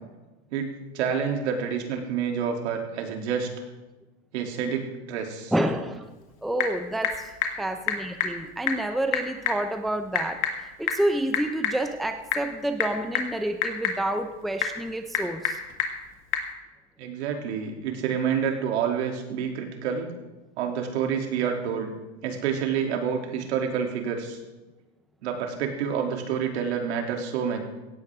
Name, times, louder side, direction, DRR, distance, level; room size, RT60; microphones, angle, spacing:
voice 1, 0.5-3.5 4.3-5.5 17.0-20.1 20.6-21.9 22.2-24.4 25.2-27.6, right 7 dB, 80° right, 2 dB, 3.0 m, -28 dB
voice 2, 5.5-6.0 6.4-7.3 7.6-10.4 10.8-15.6, right 1 dB, ahead, 7 dB, 0.6 m, -28 dB
Typing / Telephone, 6.0-16.5, left 7 dB, 40° left, 2.0 m, -31 dB
17.0 x 15.0 x 3.6 m, 1.1 s
supercardioid pair, 145°, 33 cm